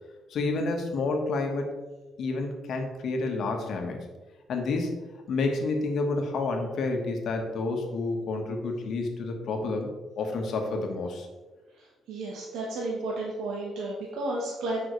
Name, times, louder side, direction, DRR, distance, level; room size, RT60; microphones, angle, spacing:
voice 1, 0.3-1.7 2.2-4.0 4.5-4.9 5.3-11.3, left 3 dB, 70° left, 3 dB, 1.4 m, -29 dB
voice 2, 11.8-14.9, right 2 dB, 80° right, -2 dB, 1.2 m, -33 dB
9.0 x 5.7 x 3.2 m, 1.2 s
cardioid pair, 90°, 0 cm